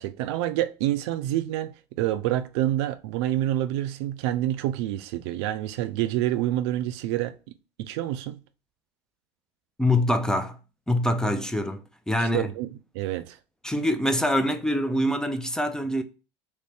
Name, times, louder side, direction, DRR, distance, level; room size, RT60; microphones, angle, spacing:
voice 1, 0.0-7.4 7.8-8.4 12.2-12.7 12.9-13.4, right 13 dB, 75° right, 0.4 m, -27 dB
voice 2, 9.8-10.6 10.9-12.5 13.6-16.0, left 1 dB, 5° left, 0.4 m, -25 dB
3.2 x 2.7 x 3.3 m
hypercardioid pair, 90°, 15 cm